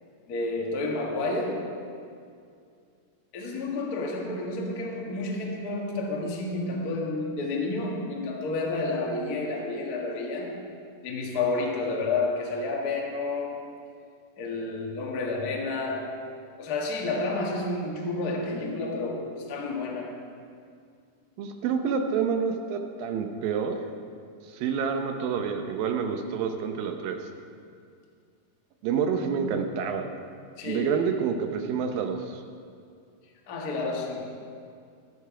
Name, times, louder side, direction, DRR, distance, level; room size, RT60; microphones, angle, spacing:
voice 1, 0.3-1.8 3.3-10.6 11.0-13.7 14.4-16.2 16.6-20.2 29.2-29.4 30.6-31.0 33.5-34.3, left 3 dB, 80° left, 0 dB, 0.8 m, -30 dB
voice 2, 21.4-23.8 24.5-27.3 28.8-30.1 30.6-32.4, right 6 dB, 75° right, 6 dB, 2.5 m, -28 dB
12.5 x 12.5 x 4.9 m, 2.3 s
omnidirectional pair, 4.4 m